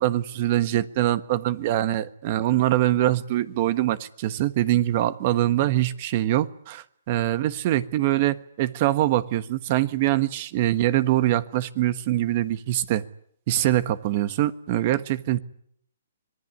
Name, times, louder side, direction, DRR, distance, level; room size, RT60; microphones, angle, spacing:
voice 1, 0.0-13.0 13.5-15.4, right 14 dB, 40° right, 1.4 m, -23 dB
26.0 x 20.0 x 9.7 m
hypercardioid pair, 150°, 0 cm